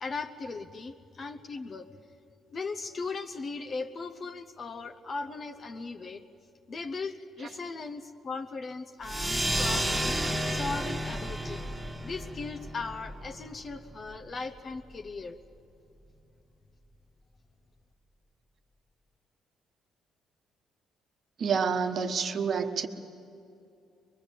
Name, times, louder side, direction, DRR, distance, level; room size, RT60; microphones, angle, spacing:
voice 1, 0.0-1.9 2.5-6.2 6.7-10.2 10.5-11.7 12.0-15.4, left 4 dB, 35° left, 7 dB, 0.8 m, -38 dB
sound 1, 9.0-14.1, right 1 dB, 10° right, 1.6 m, -32 dB
voice 2, 21.4-22.9, right 6 dB, 45° right, 7 dB, 1.2 m, -28 dB
23.0 x 21.5 x 8.3 m, 2.7 s
cardioid pair, 130°, 0 cm